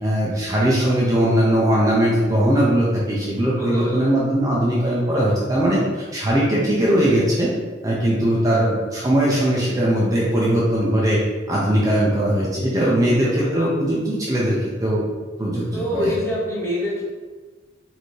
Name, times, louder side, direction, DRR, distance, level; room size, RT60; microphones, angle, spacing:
voice 1, 0.0-5.8 6.1-7.5 7.8-11.2 11.5-15.1 15.4-16.1, right 1 dB, 20° right, -6 dB, 0.5 m, -20 dB
voice 2, 3.5-4.1 13.0-13.7 15.7-17.0, left 1 dB, 15° left, -7 dB, 1.0 m, -26 dB
4.2 x 2.6 x 3.1 m, 1.4 s
head